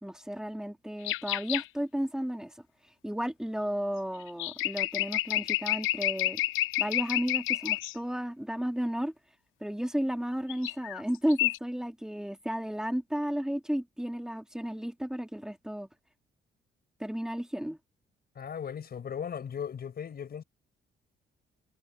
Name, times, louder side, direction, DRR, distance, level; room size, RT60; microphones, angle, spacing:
voice 1, 0.0-2.5 3.0-6.4 6.8-9.1 9.6-15.9 17.0-17.8, equal, 5° right, 2.4 m, -33 dB
sound 1, 1.0-1.7 4.3-7.9 10.5-11.0 11.3-11.6, left 16 dB, 90° left, 0.7 m, -30 dB
voice 2, 18.3-20.4, left 8 dB, 50° left, 4.9 m, -37 dB
cardioid pair, 90°, 20 cm